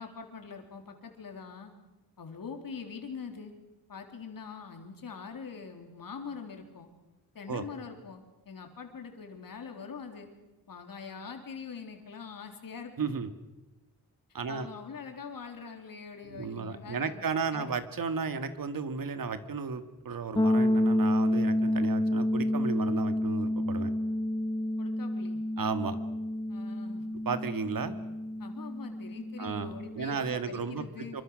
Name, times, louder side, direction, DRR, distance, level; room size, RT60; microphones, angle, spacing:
voice 1, 0.0-1.7 2.2-3.5 3.9-6.9 7.3-10.3 10.7-12.9 14.5-17.2 17.5-17.7 24.8-25.4 26.5-27.1 28.4-31.2, left 5 dB, 65° left, 4 dB, 3.7 m, -43 dB
voice 2, 13.0-13.3 14.3-14.7 16.2-23.9 25.6-26.0 27.3-28.0 29.4-30.9 31.1-31.2, right 5 dB, 65° right, 10 dB, 2.0 m, -34 dB
sound 1, 20.4-30.1, left 1 dB, 15° left, 0.8 m, -29 dB
26.5 x 25.0 x 6.5 m, 1.0 s
wide cardioid pair, 135°, 36 cm